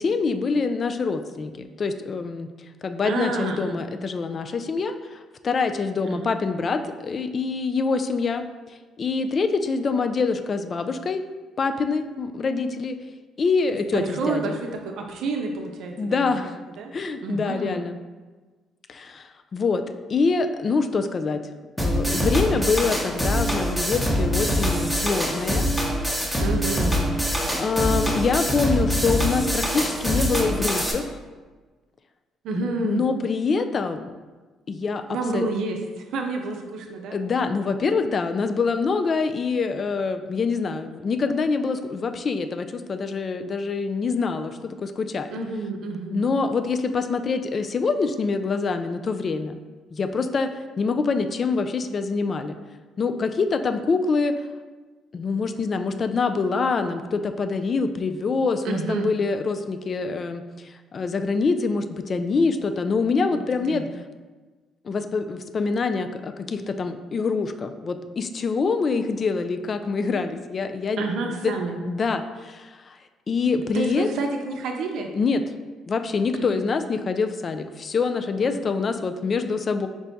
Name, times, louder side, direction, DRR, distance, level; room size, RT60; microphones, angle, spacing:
voice 1, 0.0-11.2 11.6-13.0 13.4-14.6 16.0-16.6 16.9-18.0 18.9-19.8 20.1-21.4 21.8-25.7 27.6-31.0 32.6-34.1 34.7-35.0 35.3-35.5 37.1-45.3 46.1-49.6 49.9-52.6 53.0-54.3 55.1-63.8 64.8-71.0 71.4-71.5 71.8-73.0 73.3-74.1 75.1-75.4 75.9-79.9, left 4 dB, 45° left, 9 dB, 0.3 m, -25 dB
voice 2, 3.0-3.8 6.1-6.3 13.7-16.5 16.8-16.9 17.2-17.8 26.4-27.0 32.4-33.0 35.1-37.2 45.3-46.2 58.6-59.1 63.3-63.8 71.0-71.8 73.7-75.1 76.3-76.6 78.4-78.6, right 3 dB, 75° right, 3 dB, 0.5 m, -29 dB
sound 1, 21.8-30.9, equal, 5° left, 0.8 m, -24 dB
4.6 x 2.1 x 3.9 m, 1.3 s
supercardioid pair, 70°, 0 cm